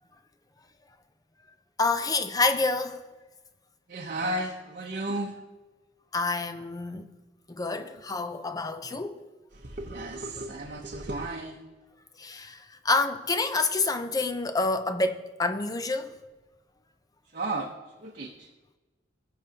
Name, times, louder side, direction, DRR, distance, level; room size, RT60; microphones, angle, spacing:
voice 1, 1.8-3.0 6.1-7.1 7.5-9.2 12.2-12.6 12.8-16.1, left 3 dB, 20° left, 0.5 m, -27 dB
voice 2, 3.9-5.3 9.6-11.6 17.3-17.7 18.0-18.5, right 2 dB, 45° right, 0.8 m, -33 dB
18.0 x 6.7 x 2.8 m
head